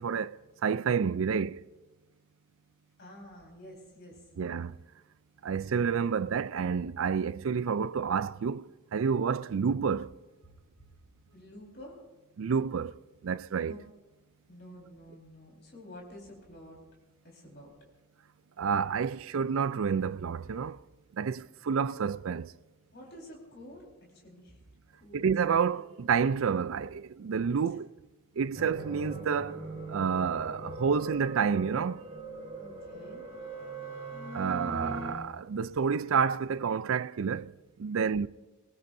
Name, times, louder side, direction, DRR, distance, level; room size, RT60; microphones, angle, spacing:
voice 1, 0.0-1.6 4.4-4.8 5.4-10.1 12.4-12.9 13.2-13.7 18.6-20.8 21.1-22.5 25.1-27.9 28.4-32.0 34.3-37.5 37.8-38.3, right 6 dB, 65° right, 0.4 m, -29 dB
voice 2, 3.0-4.3 5.3-5.4 10.4-10.5 11.3-12.0 13.6-13.9 14.5-16.8 17.2-17.7 22.9-23.9 24.1-24.6 24.9-25.3 27.6-27.8 32.6-33.2 37.9-38.2, left 1 dB, 50° left, 4.4 m, -50 dB
sound 1, 28.5-35.1, right 2 dB, 30° right, 4.5 m, -40 dB
22.5 x 20.5 x 2.6 m
head